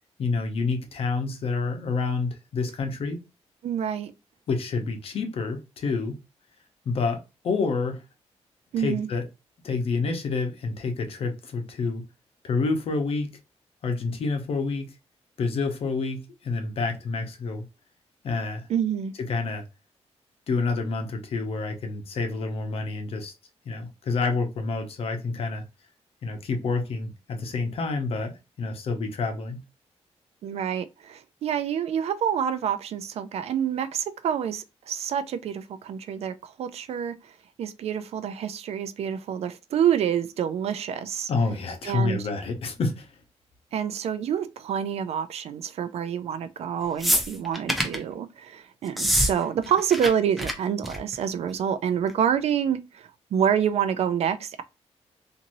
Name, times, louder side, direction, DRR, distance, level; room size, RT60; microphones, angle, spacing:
voice 1, 0.2-3.2 4.5-6.2 6.8-8.0 8.8-9.2 9.6-12.0 12.4-13.4 13.8-14.9 15.4-17.6 18.2-18.7 19.2-19.6 20.5-23.3 23.6-25.6 26.2-29.6 41.3-43.1, left 4 dB, 55° left, 0.8 m, -28 dB
voice 2, 3.6-4.1 8.7-9.1 18.7-19.1 30.4-37.3 37.6-41.3 41.8-42.2 43.7-54.6, right 8 dB, 65° right, 0.4 m, -27 dB
sound 1, 47.0-48.0 48.9-49.3 49.6-50.1 50.4-50.5 50.8-51.1 52.1-52.2, equal, ahead, 0.5 m, -24 dB
2.9 x 2.6 x 2.6 m
wide cardioid pair, 165°, 11 cm